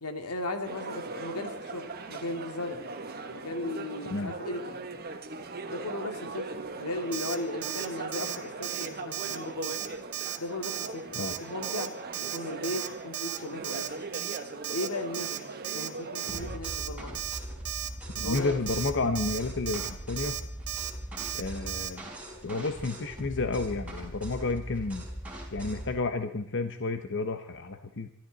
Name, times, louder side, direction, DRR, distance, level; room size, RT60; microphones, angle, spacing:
voice 1, 0.0-2.9 3.3-4.9 5.7-9.8 10.4-13.9 14.7-15.4 15.7-17.2 18.2-18.6, left 2 dB, 90° left, 5 dB, 2.3 m, -36 dB
sound 1, 0.6-16.6, right 3 dB, 45° right, 1.3 m, -40 dB
Alarm, 7.1-7.4 7.6-7.9 8.1-8.4 8.6-8.9 9.1-9.4 9.6-9.9 10.1-10.4 10.6-10.9 11.1-11.4 11.6-11.9 12.1-12.4 12.6-12.9 13.1-13.4 13.6-13.9 14.1-14.4 14.6-14.9 15.1-15.4 15.6-15.9 16.1-16.4 16.6-16.9 17.1-17.4 17.6-17.9 18.2-18.4 18.7-18.9 19.2-19.4 19.7-19.9 20.2-20.4 20.7-20.9 21.2-21.4 21.7-21.9, right 12 dB, 75° right, 1.3 m, -35 dB
sound 2, 16.3-26.0, right 1 dB, 5° right, 4.7 m, -40 dB
voice 2, 18.1-20.4 21.3-22.0 22.4-25.1 25.5-28.1, left 3 dB, 55° left, 8 dB, 0.9 m, -31 dB
23.5 x 13.0 x 4.0 m, 0.81 s
head